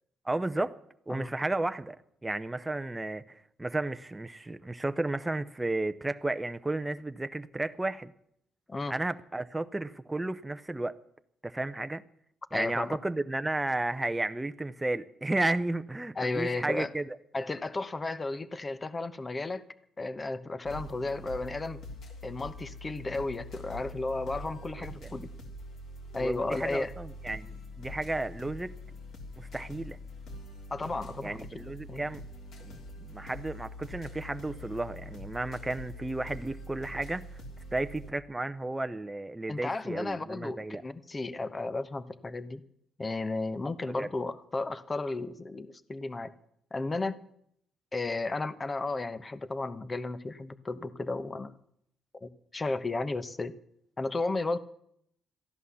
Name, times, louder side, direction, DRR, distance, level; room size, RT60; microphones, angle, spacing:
voice 1, 0.2-0.7 1.1-2.0 2.2-8.1 8.9-11.0 11.4-12.0 12.5-17.2 24.8-25.1 26.2-28.7 29.4-30.0 31.2-32.2 32.6-37.3 37.7-40.8 44.0-44.1, right 2 dB, 15° right, 0.6 m, -33 dB
voice 2, 12.5-13.0 16.2-16.9 17.3-19.6 20.0-21.8 22.2-25.3 26.1-26.9 30.7-32.0 39.5-42.6 43.0-46.3 46.7-47.3 47.9-51.5 52.2-53.6 54.0-54.6, left 3 dB, 25° left, 0.9 m, -34 dB
sound 1, 20.6-38.1, left 1 dB, 70° left, 3.0 m, -44 dB
14.5 x 11.0 x 7.0 m
cardioid pair, 95°, 0 cm